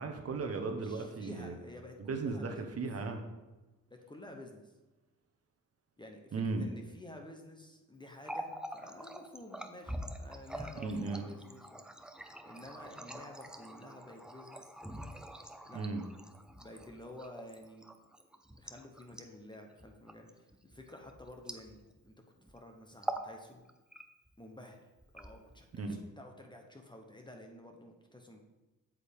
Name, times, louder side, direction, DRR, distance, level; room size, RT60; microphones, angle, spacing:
voice 1, 0.0-1.6 2.0-3.2 6.3-6.6 10.7-11.3 15.7-16.0 25.8-26.0, right 4 dB, 40° right, 4 dB, 1.0 m, -36 dB
voice 2, 0.7-2.7 3.9-4.6 6.0-11.8 12.4-14.7 15.6-15.8 16.6-17.8 18.6-21.8 22.1-22.2 22.5-23.7 24.4-24.8 25.1-28.4, left 1 dB, 15° left, 3 dB, 0.9 m, -51 dB
Water tap faucet, 8.1-22.1 22.4-22.6 22.9-23.4 23.7-24.3 25.0-25.8, right 1 dB, ahead, 0.5 m, -45 dB
8.2 x 7.6 x 3.6 m, 1.1 s
cardioid pair, 105°, 35 cm